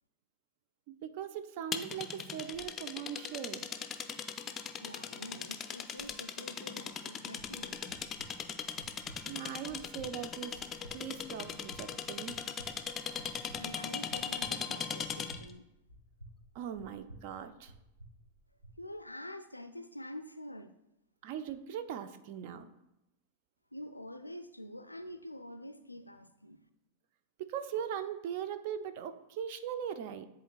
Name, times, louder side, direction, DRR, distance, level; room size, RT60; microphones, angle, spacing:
voice 1, 0.9-3.8 4.2-4.4 9.3-10.6 10.9-12.4 16.5-17.7 21.2-22.7 27.4-30.3, right 9 dB, 50° right, 11 dB, 0.5 m, -40 dB
sound 1, 1.7-15.5, left 7 dB, 25° left, 0.4 m, -39 dB
voice 2, 4.8-8.0 13.6-15.7 18.8-20.7 23.7-26.6, left 1 dB, 85° left, 10 dB, 0.3 m, -46 dB
sound 2, 7.4-18.8, right 1 dB, 80° right, 1.6 m, -55 dB
10.0 x 4.1 x 2.3 m, 0.89 s
figure-of-eight pair, 90°, 0 cm